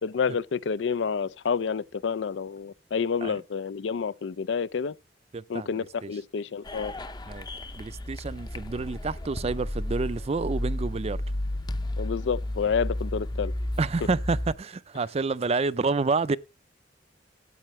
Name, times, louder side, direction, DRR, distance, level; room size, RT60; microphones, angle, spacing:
voice 1, 0.0-4.9 5.5-6.9 12.0-13.5, left 6 dB, 80° left, 0.4 m, -29 dB
voice 2, 5.3-6.1 7.3-7.5 7.7-11.2 13.8-16.4, right 4 dB, 35° right, 0.4 m, -29 dB
sound 1, 6.6-14.5, left 1 dB, 25° left, 0.7 m, -33 dB
13.5 x 8.4 x 3.1 m
head